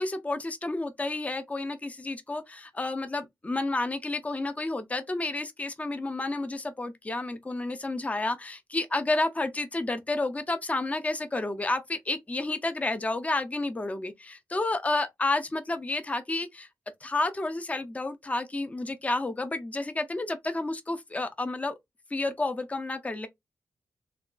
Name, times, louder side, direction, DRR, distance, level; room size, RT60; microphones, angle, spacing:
voice 1, 0.0-16.7 17.0-21.7 22.1-23.3, left 2 dB, 20° left, 0.5 m, -30 dB
2.8 x 2.2 x 2.4 m
cardioid pair, 55°, 7 cm